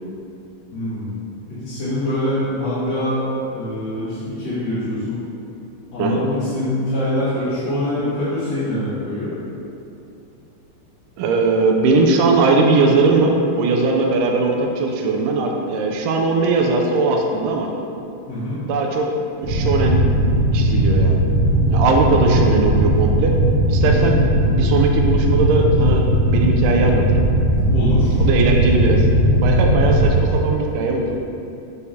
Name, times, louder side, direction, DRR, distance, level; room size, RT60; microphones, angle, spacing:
voice 1, 0.7-1.2 1.5-3.2 3.5-5.2 5.9-9.3 18.3-18.6 22.0-22.1 23.8-24.0 27.7-28.2, left 1 dB, 55° left, -13 dB, 2.2 m, -24 dB
voice 2, 11.2-17.7 18.6-20.0 20.4-21.2 21.7-23.3 23.7-24.2 24.5-27.2 28.2-31.2, right 3 dB, 90° right, 1 dB, 1.8 m, -19 dB
sound 1, 19.4-30.1, right 1 dB, 70° right, 2.8 m, -17 dB
6.8 x 6.5 x 2.8 m, 2.6 s
omnidirectional pair, 4.5 m